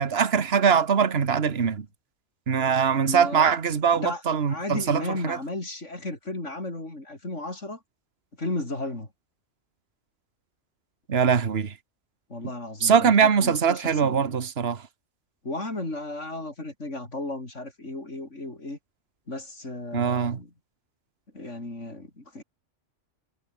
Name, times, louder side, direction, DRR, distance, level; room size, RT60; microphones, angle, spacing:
voice 1, 0.0-1.9 2.5-5.4 11.1-11.7 12.8-14.8 19.9-20.4, right 6 dB, 55° right, 1.6 m, -22 dB
voice 2, 3.1-3.5 4.0-4.2 4.5-7.8 8.4-9.1 12.3-14.2 15.4-18.8 19.3-20.5 21.3-22.4, left 2 dB, 75° left, 5.8 m, -34 dB
omnidirectional pair, 1.3 m